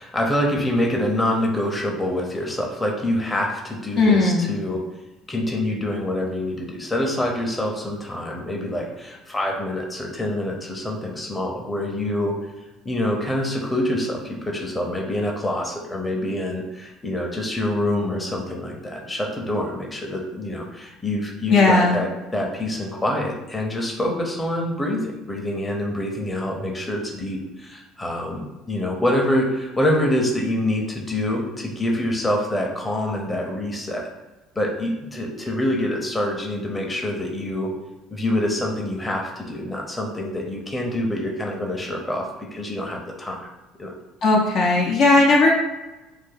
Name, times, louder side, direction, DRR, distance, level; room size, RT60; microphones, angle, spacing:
voice 1, 0.0-4.8 5.3-12.4 12.8-34.1 34.6-37.7 38.1-43.5 43.8-43.9, left 1 dB, 15° left, 0 dB, 0.8 m, -26 dB
voice 2, 4.0-4.5 21.5-22.0 44.2-45.5, left 3 dB, 55° left, -2 dB, 0.7 m, -16 dB
2.7 x 2.6 x 3.9 m, 1.1 s
hypercardioid pair, 60°, 0 cm